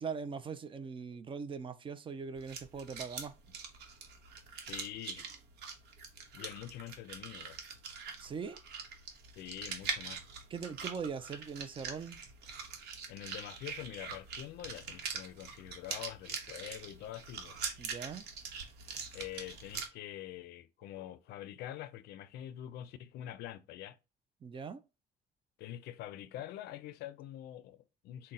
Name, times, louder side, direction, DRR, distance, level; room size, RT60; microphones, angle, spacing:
voice 1, 0.0-3.3 8.2-8.6 10.5-12.2 17.8-18.2 24.4-24.8, right 6 dB, 30° right, 0.4 m, -41 dB
sound 1, 2.4-19.9, right 5 dB, 75° right, 0.9 m, -43 dB
voice 2, 4.6-5.3 6.3-7.6 9.4-10.2 13.1-17.6 19.1-24.0 25.6-28.3, left 12 dB, 75° left, 0.4 m, -45 dB
3.8 x 2.1 x 4.0 m
cardioid pair, 110°, 17 cm